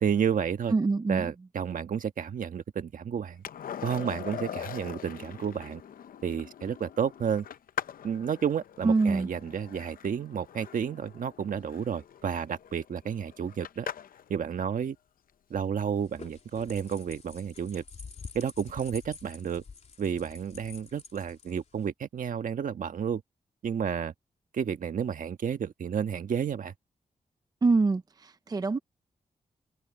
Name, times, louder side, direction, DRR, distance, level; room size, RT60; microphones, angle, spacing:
voice 1, 0.0-0.7 1.1-3.4 3.8-5.8 6.2-7.5 8.0-13.9 14.3-15.0 15.5-17.8 18.3-19.6 20.0-23.2 23.6-24.1 24.5-26.7, right 7 dB, 70° right, 1.4 m, -31 dB
voice 2, 0.7-1.3 8.8-9.3 27.6-28.8, right 3 dB, 25° right, 0.6 m, -25 dB
Skateboard, 3.4-14.3 16.9-17.0, left 9 dB, 85° left, 0.7 m, -42 dB
sound 1, 15.9-21.9, left 4 dB, 50° left, 3.4 m, -48 dB
wide cardioid pair, 135°, 14 cm